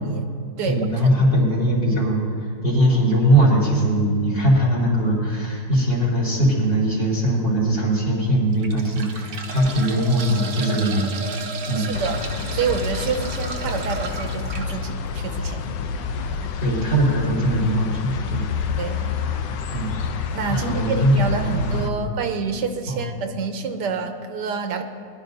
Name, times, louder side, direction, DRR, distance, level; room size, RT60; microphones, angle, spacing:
voice 1, 0.0-0.9 1.2-1.4 11.8-12.2 12.5-15.8 18.8-19.2 20.3-24.8, right 5 dB, 80° right, 6 dB, 1.4 m, -28 dB
voice 2, 0.7-2.2 2.6-11.1 11.7-11.9 16.6-18.4 19.7-19.9 20.5-22.0 22.9-23.0, right 1 dB, 30° left, -5 dB, 3.8 m, -20 dB
sound 1, 6.4-6.7 7.3-7.4 8.3-14.7 16.3-16.5 16.7-16.8, right 3 dB, 50° right, 1.1 m, -34 dB
sound 2, 11.9-21.9, left 5 dB, 85° left, 1.3 m, -29 dB
21.5 x 11.5 x 2.7 m, 2.3 s
omnidirectional pair, 1.8 m